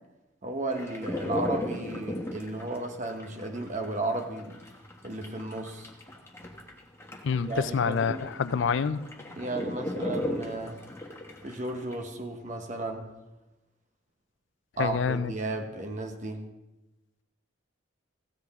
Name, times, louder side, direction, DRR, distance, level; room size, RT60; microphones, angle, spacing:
voice 1, 0.4-4.6 5.0-5.9 7.5-8.2 9.4-10.8 11.4-13.1 14.8-16.4, right 2 dB, 40° right, 5 dB, 1.0 m, -34 dB
sound 1, 0.7-12.0, left 1 dB, 15° left, 1.1 m, -36 dB
voice 2, 7.2-9.0 14.8-15.3, left 6 dB, 65° left, 14 dB, 0.4 m, -27 dB
15.0 x 7.8 x 3.6 m, 1.0 s
head